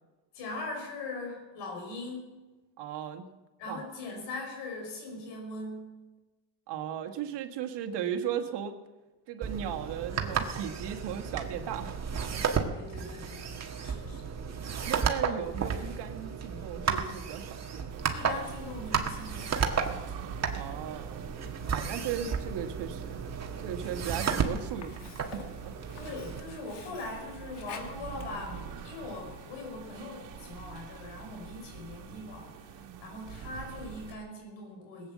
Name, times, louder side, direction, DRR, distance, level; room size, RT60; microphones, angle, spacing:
voice 1, 0.3-2.4 3.6-5.9 12.7-14.3 18.1-19.8 25.9-35.1, left 2 dB, 90° left, 2 dB, 5.7 m, -41 dB
voice 2, 2.8-3.3 3.7-3.8 6.7-8.8 9.3-12.0 12.3-12.4 14.9-17.8 20.5-21.3 21.7-23.2 23.6-25.7, right 9 dB, 70° right, 4 dB, 1.7 m, -36 dB
sound 1, 9.4-26.4, right 6 dB, 40° right, 1.7 m, -33 dB
sound 2, 17.9-34.1, right 7 dB, 85° right, 1.7 m, -45 dB
Sink (filling or washing), 23.7-29.7, left 6 dB, 70° left, 2.2 m, -51 dB
18.0 x 8.9 x 7.5 m, 1.2 s
cardioid pair, 105°, 42 cm